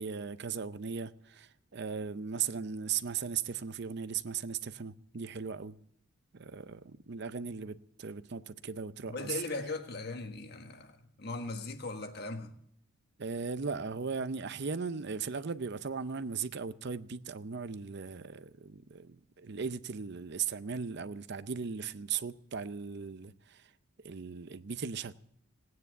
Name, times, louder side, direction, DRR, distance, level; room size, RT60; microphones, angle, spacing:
voice 1, 0.0-5.8 6.3-9.4 13.2-23.7 24.0-25.1, right 6 dB, 50° right, 0.6 m, -37 dB
voice 2, 9.1-12.5, left 3 dB, 50° left, 1.4 m, -39 dB
18.0 x 9.6 x 8.0 m
head